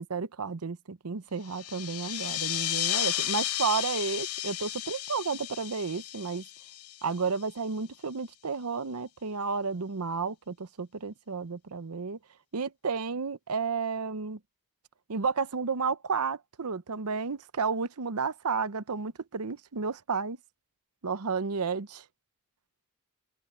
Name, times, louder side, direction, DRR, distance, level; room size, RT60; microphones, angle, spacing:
voice 1, 0.0-6.4 7.0-12.2 12.5-14.4 15.1-20.4 21.0-22.0, right 5 dB, 85° right, 0.8 m, -32 dB
sound 1, 1.4-7.6, left 13 dB, 80° left, 1.1 m, -33 dB
head